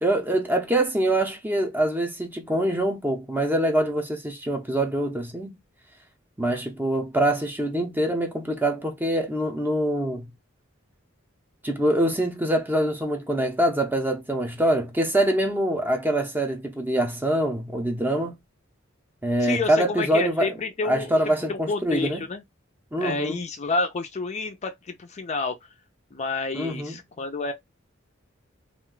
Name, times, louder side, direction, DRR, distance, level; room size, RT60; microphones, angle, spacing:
voice 1, 0.0-5.6 6.4-10.3 11.6-18.4 19.2-20.5 20.8-22.2 22.9-23.4 26.5-27.0, right 1 dB, 10° right, 0.6 m, -24 dB
voice 2, 19.4-21.1 21.5-22.4 23.0-25.6 26.1-27.5, left 3 dB, 35° left, 0.4 m, -29 dB
2.4 x 2.2 x 3.7 m
head